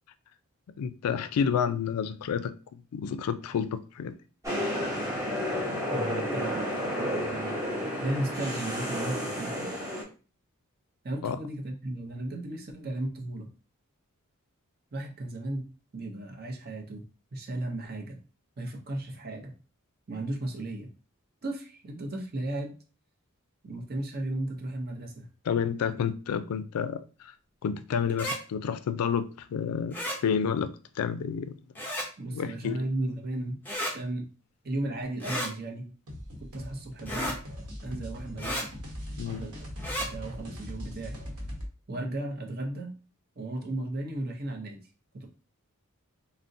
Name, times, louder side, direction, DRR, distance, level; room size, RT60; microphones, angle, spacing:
voice 1, 0.8-4.2 11.2-11.4 25.5-27.3 27.6-31.5 32.3-32.8 39.2-39.4, left 7 dB, 85° left, 0.3 m, -30 dB
sound 1, 4.4-10.0, equal, 15° right, 0.9 m, -31 dB
voice 2, 5.9-7.6 8.0-9.7 11.0-13.5 14.9-15.7 15.9-17.1 17.3-18.2 18.6-19.5 20.1-20.9 21.4-22.7 23.6-25.3 32.2-33.6 33.9-34.3 34.6-35.9 36.5-37.4 37.8-38.7 39.2-39.5 40.0-41.2 41.9-42.9 43.4-44.8 45.1-45.3, right 1 dB, 45° right, 0.6 m, -35 dB
sound 2, 28.1-28.4 29.9-30.2 31.8-32.1 33.7-33.9 35.2-35.5 37.1-37.4 38.4-38.7 39.8-40.1, equal, 10° left, 0.5 m, -32 dB
sound 3, 36.1-41.7, equal, 85° right, 0.9 m, -40 dB
3.7 x 2.0 x 2.6 m
head